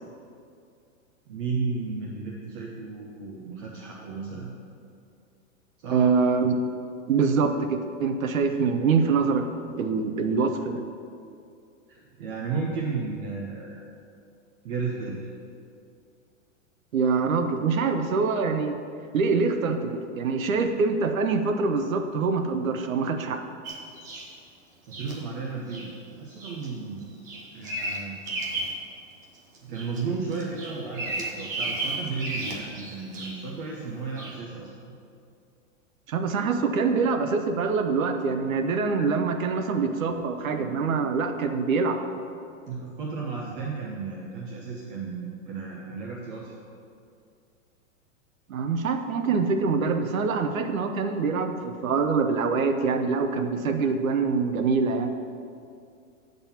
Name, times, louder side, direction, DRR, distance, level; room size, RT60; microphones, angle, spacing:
voice 1, 1.3-4.5 5.8-6.1 11.9-13.8 14.6-15.3 25.0-27.2 27.5-28.3 29.6-34.9 42.7-46.5, right 4 dB, 40° right, -2 dB, 1.1 m, -34 dB
voice 2, 5.9-6.5 7.1-9.5 9.8-10.8 16.9-18.7 19.1-23.4 36.1-42.0 48.5-55.1, right 4 dB, 90° right, 7 dB, 0.9 m, -25 dB
Bird vocalization bird call bird song, 23.6-24.3 24.9-25.2 25.7-25.9 26.4-26.7 27.0-28.8 29.2-30.0 30.3-33.5 34.2-34.4, right 2 dB, 15° right, 0.3 m, -34 dB
9.0 x 4.0 x 7.1 m, 2.4 s
hypercardioid pair, 155°, 39 cm